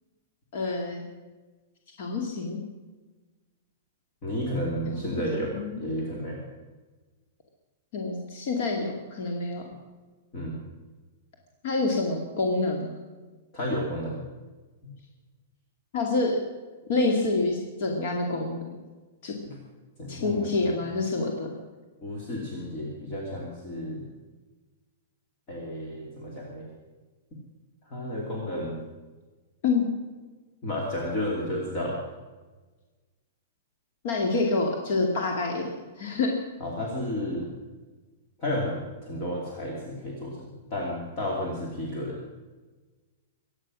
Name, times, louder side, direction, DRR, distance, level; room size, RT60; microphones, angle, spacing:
voice 1, 0.5-1.0 2.0-2.6 4.9-5.8 7.9-9.6 11.6-13.0 15.9-16.4 16.9-18.6 19.2-19.3 20.1-21.5 29.6-29.9 34.0-36.3, left 3 dB, 45° left, 1 dB, 2.4 m, -27 dB
voice 2, 4.2-6.4 10.3-10.6 13.5-14.1 14.8-14.9 19.4-19.6 20.0-20.8 22.0-24.1 25.5-26.7 27.8-28.8 30.6-32.0 36.6-37.5 38.4-42.2, left 1 dB, 25° left, -3 dB, 2.9 m, -32 dB
23.5 x 9.8 x 6.3 m, 1.3 s
supercardioid pair, 175°, 0 cm